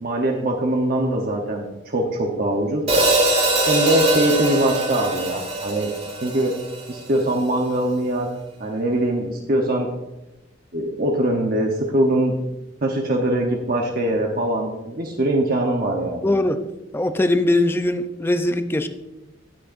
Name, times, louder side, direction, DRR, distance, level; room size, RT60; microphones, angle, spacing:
voice 1, 0.0-2.8 3.7-5.9 6.2-6.5 6.9-8.3 8.6-9.9 10.7-12.4 12.8-16.3, right 1 dB, 50° right, 0 dB, 0.9 m, -22 dB
Hi-hat, 2.9-7.2, right 2 dB, 35° right, 2.2 m, -22 dB
voice 2, 16.2-16.6 16.9-18.9, left 1 dB, 10° left, 9 dB, 0.5 m, -20 dB
17.0 x 6.4 x 2.6 m, 0.98 s
head